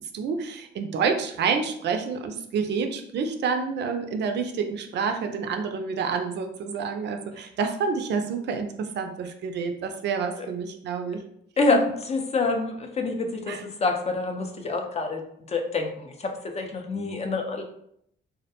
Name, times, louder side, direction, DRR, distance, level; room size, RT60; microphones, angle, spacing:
voice 1, 0.1-11.2 13.5-13.6, right 5 dB, 60° right, 6 dB, 0.4 m, -28 dB
voice 2, 12.1-15.2 15.5-17.6, left 3 dB, 30° left, 3 dB, 0.4 m, -27 dB
2.3 x 2.1 x 2.8 m, 0.70 s
cardioid pair, 90°, 20 cm